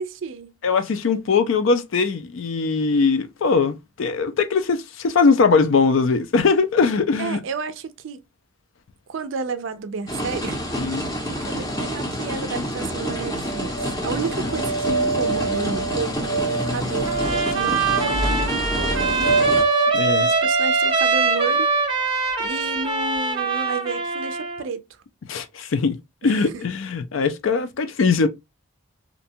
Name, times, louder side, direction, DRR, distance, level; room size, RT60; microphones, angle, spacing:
voice 1, 0.0-0.5 7.2-8.2 9.1-10.6 11.3-19.5 20.1-21.7 22.4-24.8 26.2-26.5, right 4 dB, 60° right, 0.4 m, -31 dB
voice 2, 0.6-7.4 10.8-11.1 19.9-20.3 25.3-26.0 26.2-28.3, left 4 dB, 65° left, 0.4 m, -20 dB
sound 1, 10.1-19.6, equal, 15° left, 0.5 m, -28 dB
sound 2, 13.4-22.6, right 3 dB, 90° left, 1.1 m, -26 dB
Trumpet, 17.0-24.6, right 4 dB, 20° right, 0.7 m, -23 dB
2.6 x 2.2 x 2.6 m
head